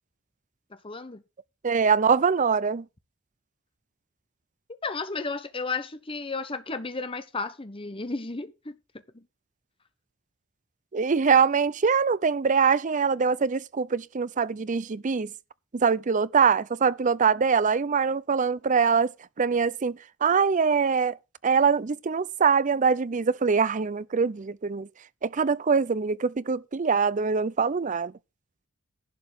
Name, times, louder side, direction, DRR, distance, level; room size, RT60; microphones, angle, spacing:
voice 1, 0.7-1.2 4.8-8.7 9.1-9.3, left 3 dB, 25° left, 1.1 m, -33 dB
voice 2, 1.6-2.8 10.9-15.3 15.7-19.1 19.4-21.2 21.4-24.9 25.2-28.1, right 5 dB, 40° right, 0.5 m, -23 dB
11.5 x 4.7 x 8.0 m
head